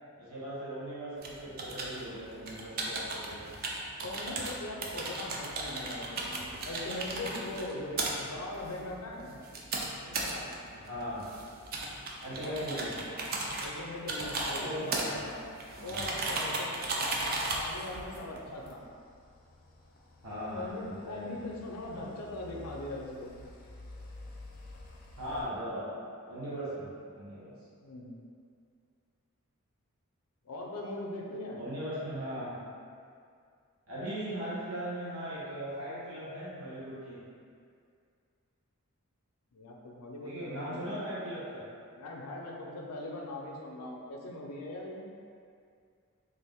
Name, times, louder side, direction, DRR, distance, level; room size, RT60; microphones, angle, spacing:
voice 1, 0.2-3.4 10.7-11.3 12.2-13.0 14.4-15.2 15.7-16.1 20.2-21.4 21.9-22.1 25.2-25.9 26.3-27.5 31.5-32.6 33.9-37.2 40.2-41.6, equal, 70° right, -9 dB, 1.0 m, -39 dB
sound 1, 1.2-18.7, right 2 dB, 40° right, 0.4 m, -37 dB
voice 2, 4.0-9.4 10.0-10.5 12.4-12.9 13.6-15.4 15.8-16.7 17.0-17.1 17.5-18.8 20.5-23.4 27.8-28.1 30.4-31.7 39.5-41.0 42.0-45.0, left 1 dB, 90° left, -1 dB, 0.5 m, -40 dB
sound 2, 18.4-25.4, left 2 dB, 40° left, 0.4 m, -51 dB
3.3 x 2.5 x 3.5 m, 2.3 s
head